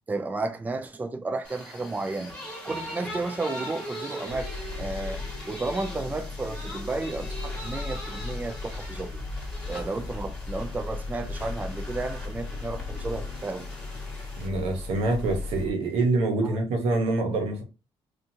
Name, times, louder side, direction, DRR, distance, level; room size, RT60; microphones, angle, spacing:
voice 1, 0.1-2.3 2.6-9.1 9.7-13.7 16.4-16.6, right 3 dB, 15° right, 0.4 m, -33 dB
sound 1, 1.4-15.6, equal, 10° left, 1.4 m, -41 dB
sound 2, 4.3-15.7, left 3 dB, 35° left, 0.7 m, -36 dB
voice 2, 14.4-17.6, right 2 dB, 90° right, 0.9 m, -25 dB
2.9 x 2.4 x 2.6 m
cardioid pair, 100°, 10 cm